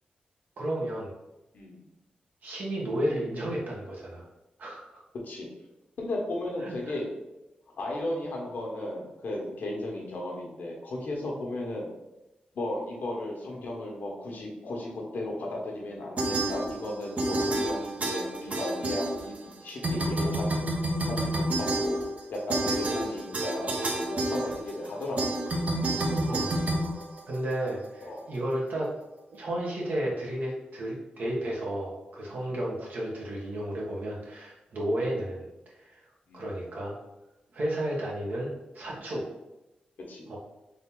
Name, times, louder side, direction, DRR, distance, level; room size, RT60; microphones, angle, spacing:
voice 1, 0.6-1.1 2.4-4.2 4.6-5.0 6.6-6.9 26.3-26.6 27.3-28.9 29.3-36.0 36.3-36.9 37.5-39.2 40.3-40.4, right 1 dB, 70° right, -4 dB, 1.3 m, -32 dB
voice 2, 6.0-7.1 7.8-11.9 12.5-20.6 21.1-21.9 22.3-25.4 28.0-28.3 32.2-32.5 34.8-34.9 36.3-36.6 40.1-40.3, left 1 dB, 70° left, -1 dB, 1.2 m, -35 dB
sound 1, 16.2-16.9 17.2-19.5 19.8-27.7, right 1 dB, 50° right, 0.8 m, -29 dB
3.8 x 2.8 x 3.8 m, 0.96 s
cardioid pair, 60°, 3 cm